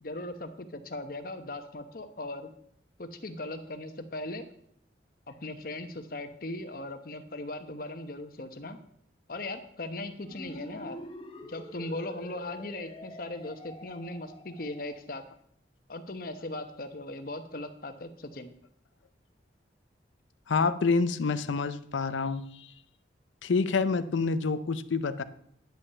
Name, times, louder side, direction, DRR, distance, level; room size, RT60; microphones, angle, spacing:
voice 1, 0.0-2.5 3.0-4.4 5.3-8.8 9.3-11.0 11.5-15.2 15.9-18.5, left 2 dB, 50° left, 8 dB, 0.9 m, -38 dB
sound 1, 10.2-15.0, equal, 30° left, 1.1 m, -46 dB
voice 2, 20.5-22.7 23.4-25.2, left 4 dB, 90° left, 13 dB, 0.5 m, -27 dB
10.5 x 5.5 x 7.0 m, 0.68 s
head